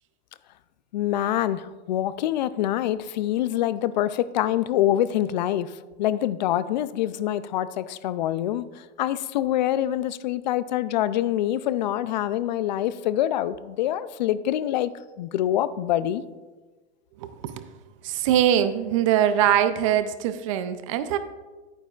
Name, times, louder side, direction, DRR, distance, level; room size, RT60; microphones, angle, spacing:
voice 1, 0.9-5.7 6.0-8.6 9.0-14.9 15.2-16.2, left 12 dB, 45° left, 16 dB, 0.4 m, -25 dB
voice 2, 17.2-17.7 18.0-21.2, right 10 dB, 30° right, 11 dB, 0.4 m, -22 dB
10.5 x 9.0 x 2.4 m, 1.2 s
hypercardioid pair, 155°, 32 cm